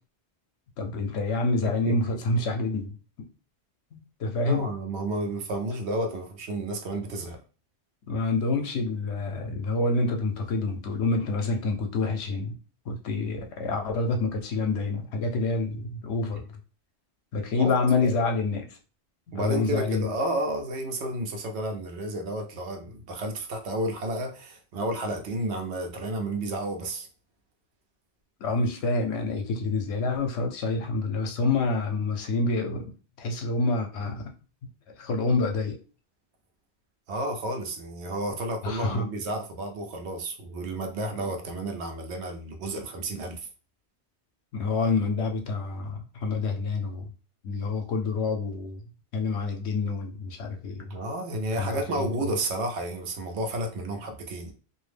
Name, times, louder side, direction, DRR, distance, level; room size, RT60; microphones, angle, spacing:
voice 1, 0.8-2.9 3.9-4.7 8.1-12.5 12.9-16.4 17.3-18.7 19.3-20.1 28.4-32.8 33.2-34.2 35.0-35.7 38.6-39.1 44.5-47.1 47.4-48.8 49.1-50.9 51.6-52.1, left 3 dB, 80° left, 0.8 m, -27 dB
voice 2, 4.4-7.4 17.6-17.7 18.0-18.3 19.3-27.1 37.1-43.5 50.8-54.5, right 1 dB, 75° right, 0.9 m, -31 dB
2.5 x 2.0 x 3.2 m
omnidirectional pair, 1.1 m